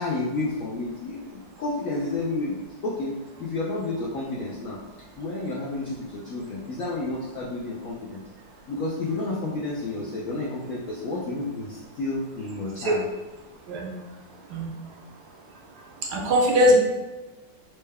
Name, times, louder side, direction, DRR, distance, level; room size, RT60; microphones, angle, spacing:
voice 1, 0.0-3.1 3.4-4.8 5.2-8.2 8.7-13.0, left 2 dB, 75° left, -4 dB, 0.7 m, -30 dB
voice 2, 16.0-16.8, left 1 dB, 70° right, -1 dB, 1.0 m, -21 dB
4.3 x 2.1 x 3.3 m, 1.1 s
omnidirectional pair, 2.0 m